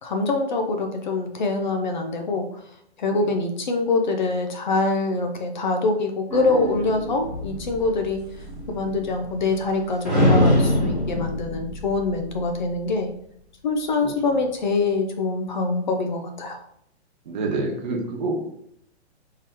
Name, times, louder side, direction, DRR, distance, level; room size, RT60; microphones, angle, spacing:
voice 1, 0.0-2.6 3.0-8.2 8.7-13.1 13.6-16.6, left 3 dB, 45° left, 5 dB, 0.5 m, -24 dB
sound 1, 6.3-9.7 10.0-12.7, left 1 dB, ahead, 1.1 m, -25 dB
voice 2, 17.3-18.4, right 3 dB, 40° right, 1 dB, 1.1 m, -27 dB
3.8 x 3.0 x 4.4 m, 0.71 s
hypercardioid pair, 170°, 34 cm